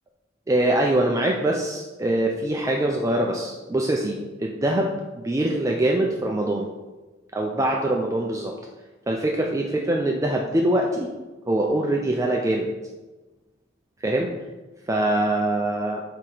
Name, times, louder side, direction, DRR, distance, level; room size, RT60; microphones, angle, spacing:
voice 1, 0.5-6.7 7.3-8.5 9.1-11.1 11.5-12.7 14.0-14.3 14.9-16.0, right 1 dB, 15° right, 0 dB, 0.4 m, -23 dB
7.5 x 2.9 x 4.8 m, 1.2 s
head